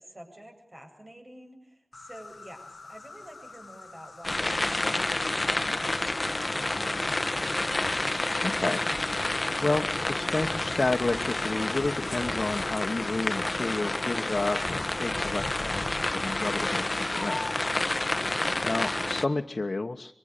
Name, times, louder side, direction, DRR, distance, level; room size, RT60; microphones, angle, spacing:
voice 1, 0.0-7.3, right 1 dB, 30° right, 4 dB, 8.0 m, -49 dB
Insect, 1.9-18.5, left 3 dB, 70° left, 1.0 m, -47 dB
sound 1, 4.2-19.3, left 2 dB, 35° left, 1.3 m, -29 dB
voice 2, 8.4-9.3 9.6-17.9 18.6-20.1, left 3 dB, 55° left, 4 dB, 1.3 m, -31 dB
25.0 x 24.5 x 6.8 m, 0.73 s
wide cardioid pair, 50°, 0 cm